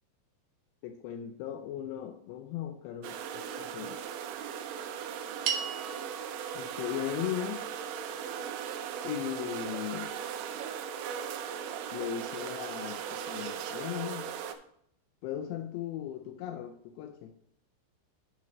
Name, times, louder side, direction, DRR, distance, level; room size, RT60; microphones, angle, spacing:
voice 1, 0.8-4.0 6.5-7.6 9.0-10.1 11.9-14.3 15.2-17.3, left 11 dB, 85° left, 5 dB, 2.5 m, -37 dB
sound 1, 3.0-14.5, right 8 dB, 90° right, 3.2 m, -38 dB
sound 2, 5.4-9.9, right 7 dB, 70° right, 2.1 m, -40 dB
13.5 x 5.6 x 3.1 m, 0.70 s
omnidirectional pair, 5.6 m